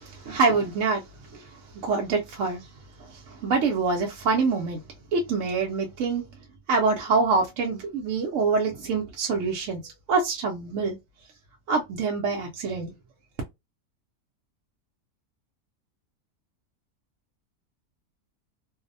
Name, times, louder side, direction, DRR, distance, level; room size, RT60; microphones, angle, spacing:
voice 1, 0.0-2.7 3.0-4.8 5.1-6.3 6.7-11.0 11.7-12.9, right 4 dB, 65° right, 0.9 m, -26 dB
2.6 x 2.0 x 2.5 m
omnidirectional pair, 1.6 m